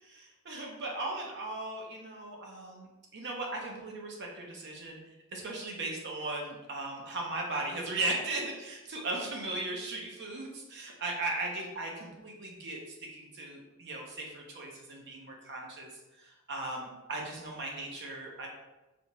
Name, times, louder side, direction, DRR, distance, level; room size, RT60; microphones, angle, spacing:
voice 1, 0.4-5.0 5.3-12.8 13.1-15.9 16.2-18.5, right 2 dB, 55° right, 0 dB, 0.8 m, -37 dB
4.2 x 2.4 x 3.0 m, 1.0 s
head